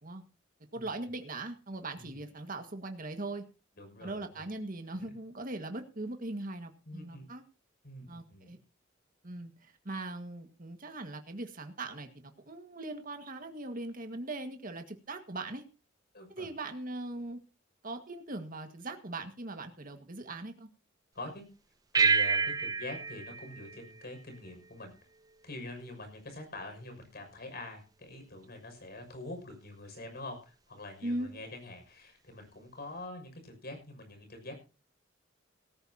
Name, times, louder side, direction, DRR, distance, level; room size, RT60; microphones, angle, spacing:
voice 1, 0.7-3.4 4.0-7.4 8.1-8.6 9.2-15.6 16.4-17.4 17.8-20.7 31.0-31.3, right 2 dB, 45° right, 6 dB, 1.8 m, -40 dB
voice 2, 3.8-4.5 5.0-5.1 6.9-7.3 7.8-8.6 16.1-16.5 21.1-21.4 21.9-24.9 25.4-34.5, left 2 dB, 55° left, 6 dB, 6.3 m, -45 dB
sound 1, 21.9-24.7, right 5 dB, 20° right, 0.5 m, -29 dB
18.5 x 13.5 x 2.9 m, 0.34 s
head